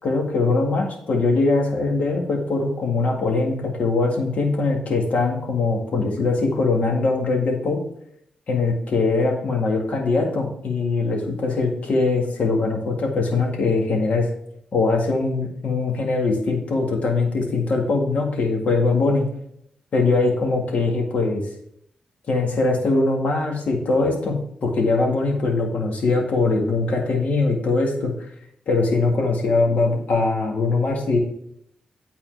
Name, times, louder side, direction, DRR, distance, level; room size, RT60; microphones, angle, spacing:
voice 1, 0.0-7.8 8.5-14.3 14.7-19.2 19.9-21.4 22.3-28.1 28.7-31.2, left 3 dB, 70° left, 1 dB, 1.9 m, -21 dB
8.9 x 4.3 x 4.7 m, 0.72 s
supercardioid pair, 50°, 3 cm